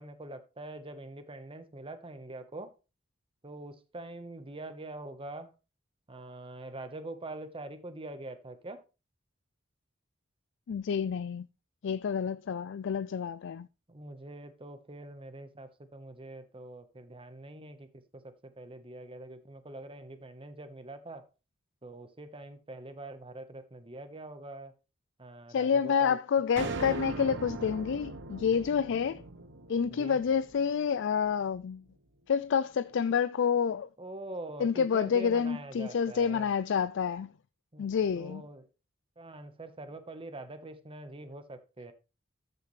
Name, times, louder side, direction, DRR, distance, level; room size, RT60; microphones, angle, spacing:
voice 1, 0.0-2.7 3.4-5.5 6.1-8.8 13.9-21.3 21.8-24.7 25.2-26.2 29.9-30.2 34.0-36.5 37.7-37.9 38.2-38.7 39.2-41.9, right 2 dB, 25° right, 1.2 m, -44 dB
voice 2, 10.7-11.4 11.8-13.7 25.5-29.2 29.7-31.8 32.3-33.9 34.6-37.3 37.8-38.4, left 7 dB, 65° left, 0.4 m, -28 dB
sound 1, 26.6-31.0, right 3 dB, 65° right, 1.0 m, -40 dB
13.0 x 6.7 x 3.3 m
head